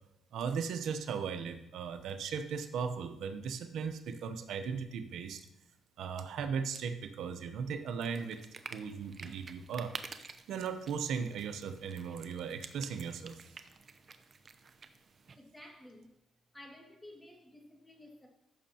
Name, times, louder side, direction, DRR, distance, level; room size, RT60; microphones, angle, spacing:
voice 1, 0.3-5.4 6.0-9.9 10.2-13.4, right 6 dB, 75° right, 8 dB, 0.8 m, -37 dB
sound 1, 8.0-15.4, right 5 dB, 40° right, 0.7 m, -50 dB
voice 2, 15.4-16.2 16.5-18.3, left 1 dB, 10° left, 0 dB, 2.0 m, -53 dB
14.5 x 6.3 x 2.8 m, 0.82 s
cardioid pair, 90°, 0 cm